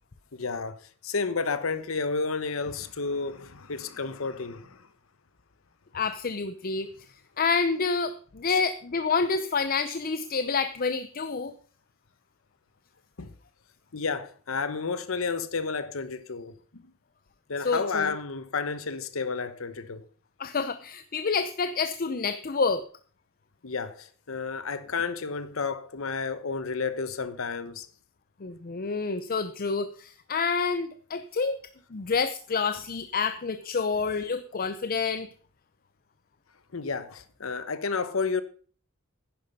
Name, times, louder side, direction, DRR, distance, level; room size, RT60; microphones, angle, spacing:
voice 1, 0.3-4.9 8.5-8.6 13.2-13.3 13.9-16.8 17.5-20.0 23.6-27.9 36.7-38.4, left 4 dB, 80° left, 1.0 m, -31 dB
voice 2, 5.9-6.9 7.4-11.5 17.6-18.1 20.4-22.8 28.4-31.6 31.9-35.3, left 4 dB, 45° left, 0.6 m, -28 dB
10.5 x 10.0 x 5.4 m
head